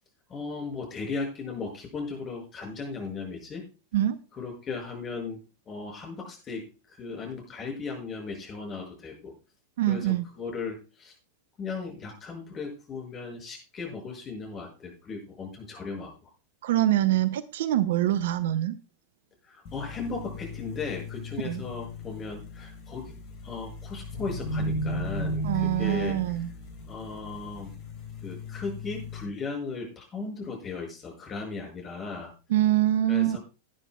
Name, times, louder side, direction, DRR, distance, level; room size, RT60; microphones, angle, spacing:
voice 1, 0.3-3.6 4.3-5.4 5.7-9.3 9.8-11.1 11.6-16.3 19.4-23.2 23.4-26.2 26.8-27.7 28.2-32.3 33.1-33.4, left 4 dB, 25° left, 1 dB, 6.1 m, -36 dB
voice 2, 9.8-10.3 16.6-18.8 21.4-21.6 25.4-26.5 32.5-33.4, right 13 dB, 55° right, 15 dB, 0.7 m, -24 dB
sound 1, 19.6-29.2, left 1 dB, 45° left, 4.4 m, -36 dB
18.5 x 9.9 x 2.3 m, 0.31 s
figure-of-eight pair, 90°, 0 cm